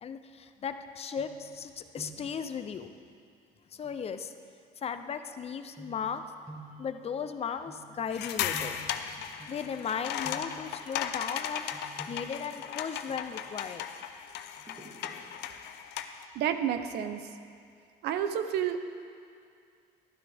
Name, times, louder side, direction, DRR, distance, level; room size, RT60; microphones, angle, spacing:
voice 1, 0.0-2.9 3.7-4.3 4.8-6.2 6.8-8.7 9.5-13.9, left 6 dB, 35° left, 9 dB, 0.6 m, -36 dB
sound 1, 1.2-1.7 1.9-2.4 3.8-4.0 5.8-9.9 10.2-10.8 11.7-13.5 14.6-15.3 15.6-15.8, right 2 dB, 15° right, 2.1 m, -50 dB
sound 2, 8.1-16.2, left 10 dB, 80° left, 0.6 m, -37 dB
voice 2, 16.3-17.2 18.0-18.8, right 9 dB, 80° right, 9 dB, 0.7 m, -30 dB
12.0 x 12.0 x 3.5 m, 2.3 s
cardioid pair, 110°, 17 cm